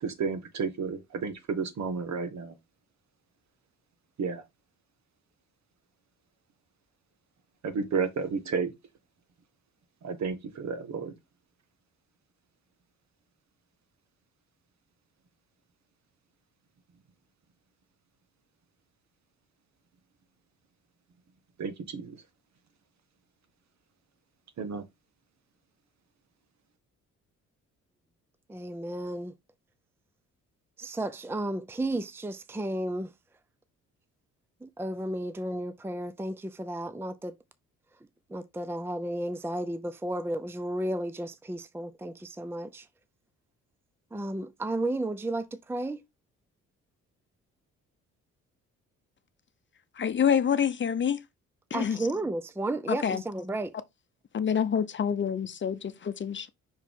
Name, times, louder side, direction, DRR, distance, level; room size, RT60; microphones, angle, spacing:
voice 1, 0.0-2.5 4.2-4.4 7.6-8.7 10.0-11.1 21.6-22.2 24.6-24.8, right 5 dB, 65° right, 1.6 m, -32 dB
voice 2, 28.5-29.3 30.8-33.1 34.6-37.4 38.3-42.9 44.1-46.0 51.7-53.7, right 1 dB, 10° right, 0.5 m, -33 dB
voice 3, 49.9-51.2 51.7-52.0 52.9-53.2 54.3-56.5, left 8 dB, 40° left, 0.8 m, -27 dB
5.6 x 4.7 x 3.7 m
cardioid pair, 90°, 30 cm